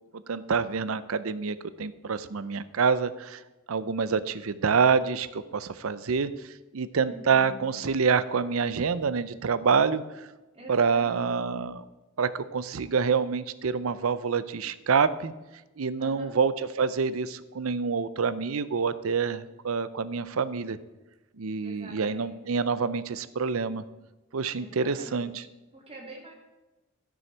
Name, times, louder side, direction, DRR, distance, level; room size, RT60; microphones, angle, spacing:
voice 1, 0.1-3.4 3.7-10.3 10.7-11.8 12.2-15.3 15.8-20.8 21.4-23.8 24.3-25.3, right 5 dB, 70° right, 15 dB, 0.6 m, -27 dB
voice 2, 7.0-7.7 10.5-11.4 16.0-16.3 21.6-22.6 24.6-26.3, right 2 dB, 30° right, -2 dB, 2.3 m, -46 dB
12.5 x 6.3 x 4.5 m, 1.1 s
head